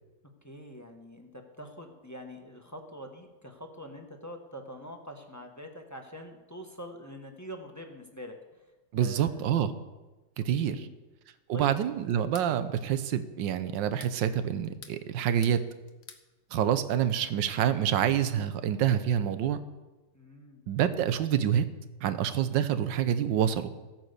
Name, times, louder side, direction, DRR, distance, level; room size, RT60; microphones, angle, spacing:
voice 1, 0.4-8.6 9.0-9.5 10.7-10.9 11.5-11.8 20.1-20.6, equal, 10° left, 3 dB, 1.0 m, -45 dB
voice 2, 8.9-9.7 10.4-10.8 11.5-15.6 16.5-19.6 20.7-21.6 22.0-23.7, right 9 dB, 70° right, 12 dB, 1.5 m, -27 dB
sound 1, 12.1-12.5 13.7-14.2 14.6-15.6 15.9-16.3, left 6 dB, 45° left, 0.9 m, -49 dB
15.0 x 8.9 x 6.8 m, 1.1 s
omnidirectional pair, 2.1 m